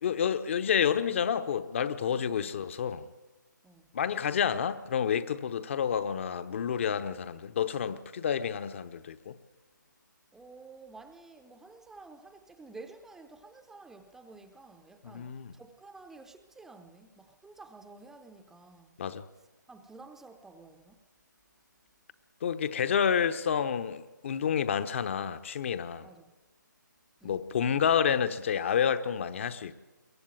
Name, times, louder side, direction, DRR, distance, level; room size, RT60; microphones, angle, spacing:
voice 1, 0.0-3.1 3.9-9.4 15.0-15.5 19.0-19.3 22.4-26.1 27.2-29.7, left 8 dB, 40° left, 1.0 m, -29 dB
voice 2, 10.3-19.0 19.7-21.0 22.9-23.1 26.0-26.3 27.2-27.4, right 3 dB, 5° right, 0.8 m, -51 dB
23.0 x 17.0 x 9.1 m
figure-of-eight pair, 150°, 11 cm